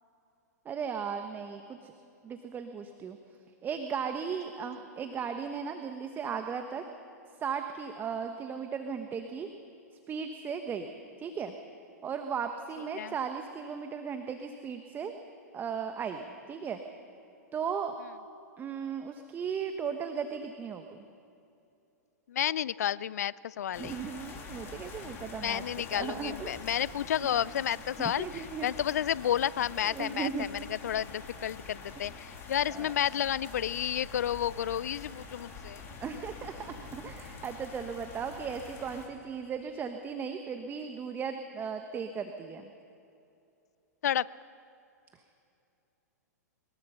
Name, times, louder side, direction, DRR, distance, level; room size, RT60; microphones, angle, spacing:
voice 1, 0.6-1.9 2.2-3.2 3.6-6.8 7.4-9.5 10.1-10.9 11.2-11.5 12.0-15.1 15.5-16.8 17.5-18.0 18.6-21.0 23.8-25.6 25.9-26.6 28.0-28.7 29.8-30.5 32.7-32.9 35.8-42.7, right 6 dB, 20° right, 6 dB, 1.2 m, -36 dB
voice 2, 22.3-24.0 25.4-35.9 44.0-44.3, left 10 dB, 70° left, 22 dB, 0.5 m, -31 dB
sound 1, 23.7-39.1, left 4 dB, 25° left, 3.3 m, -46 dB
23.0 x 21.0 x 5.8 m, 2.7 s
hypercardioid pair, 110°, 9 cm